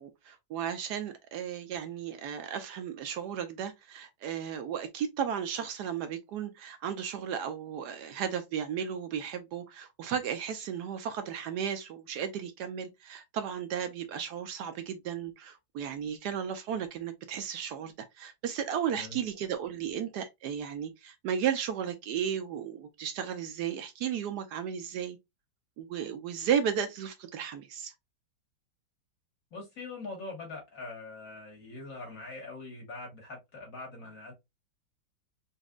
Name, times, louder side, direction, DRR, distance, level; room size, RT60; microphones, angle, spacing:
voice 1, 0.0-25.2 25.8-27.9, right 8 dB, 70° right, 1.0 m, -34 dB
voice 2, 29.5-34.3, left 3 dB, 50° left, 1.8 m, -43 dB
4.1 x 2.6 x 2.3 m
omnidirectional pair, 2.1 m